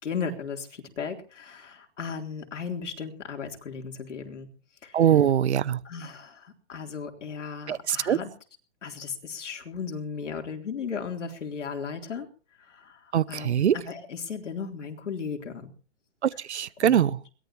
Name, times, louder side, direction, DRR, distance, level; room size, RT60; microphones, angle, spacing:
voice 1, 0.0-4.5 4.8-5.0 5.8-8.3 8.8-12.3 12.6-15.7 16.8-17.2, left 6 dB, 85° left, 3 dB, 3.8 m, -36 dB
voice 2, 4.9-5.8 7.7-8.2 13.1-13.7 16.2-17.2, right 9 dB, 70° right, 21 dB, 0.9 m, -22 dB
22.0 x 18.0 x 3.1 m, 0.38 s
hypercardioid pair, 175°, 35 cm